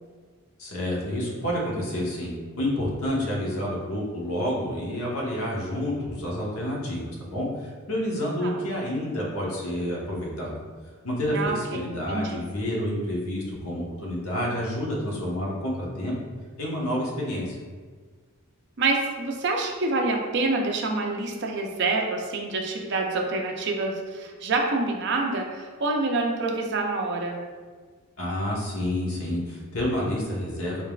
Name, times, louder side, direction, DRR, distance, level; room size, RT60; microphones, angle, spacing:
voice 1, 0.6-10.5 11.0-16.1 16.6-17.6 28.2-30.8, left 1 dB, 70° left, -4 dB, 1.1 m, -29 dB
voice 2, 11.3-12.4 18.8-27.4, right 3 dB, 50° right, 1 dB, 0.5 m, -27 dB
4.5 x 3.5 x 2.3 m, 1.5 s
head